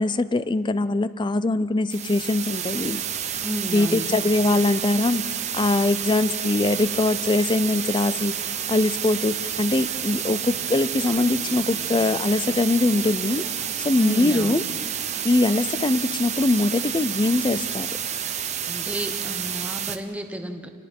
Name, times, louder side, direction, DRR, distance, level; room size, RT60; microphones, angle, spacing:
voice 1, 0.0-3.0 3.7-8.3 8.7-13.4 13.8-14.6 15.2-17.9, left 2 dB, 20° left, 15 dB, 0.4 m, -22 dB
sound 1, 1.9-20.0, right 9 dB, 30° right, 0.9 m, -30 dB
voice 2, 3.4-4.1 14.0-14.6 18.7-20.7, equal, 5° right, 6 dB, 1.0 m, -31 dB
sound 2, 10.6-15.7, equal, 40° left, 5.8 m, -48 dB
29.0 x 19.0 x 5.4 m, 2.3 s
head